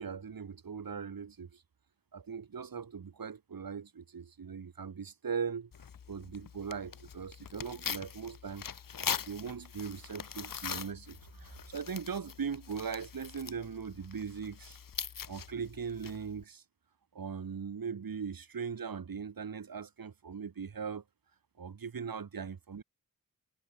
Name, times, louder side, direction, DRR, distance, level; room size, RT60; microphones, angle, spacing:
voice 1, 0.0-1.6 2.1-5.7 6.1-8.6 9.3-14.8 15.3-16.6 17.1-21.0 21.6-22.8, right 6 dB, 70° right, 6.7 m, -40 dB
Tearing, 5.7-16.4, left 7 dB, 65° left, 1.5 m, -42 dB
wide cardioid pair, 130°, 36 cm